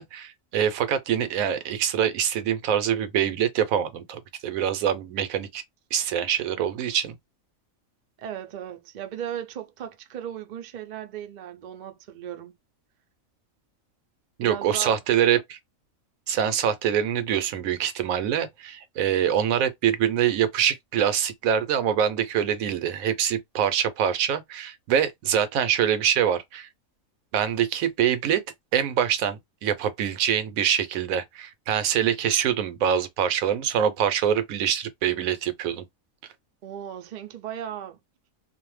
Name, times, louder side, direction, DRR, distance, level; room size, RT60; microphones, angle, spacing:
voice 1, 0.0-5.6 5.9-7.1 14.4-15.6 16.3-26.7 27.3-28.4 28.7-35.8, right 9 dB, 80° right, 1.0 m, -24 dB
voice 2, 8.2-12.5 14.4-15.0 36.6-38.0, right 10 dB, 60° right, 0.4 m, -36 dB
2.5 x 2.0 x 3.1 m
omnidirectional pair, 1.4 m